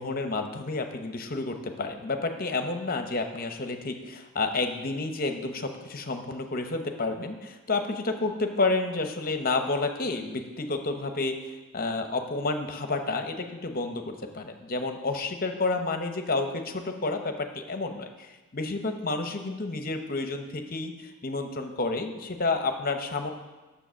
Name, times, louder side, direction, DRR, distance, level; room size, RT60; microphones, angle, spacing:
voice 1, 0.0-23.3, left 3 dB, 40° left, 6 dB, 0.9 m, -30 dB
9.9 x 7.2 x 6.2 m, 1.2 s
head